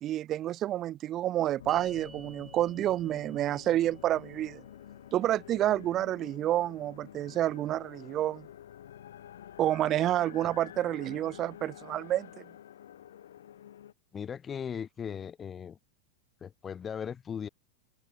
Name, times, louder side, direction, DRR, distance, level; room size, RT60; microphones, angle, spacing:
voice 1, 0.0-4.6 5.1-8.5 9.6-12.4, right 13 dB, 30° right, 0.4 m, -29 dB
sound 1, 1.6-13.9, left 10 dB, 60° left, 4.0 m, -49 dB
sound 2, 1.7-8.2, right 4 dB, 10° right, 1.4 m, -57 dB
voice 2, 14.1-15.8 16.4-17.5, left 7 dB, 20° left, 0.6 m, -38 dB
figure-of-eight pair, 90°, 0 cm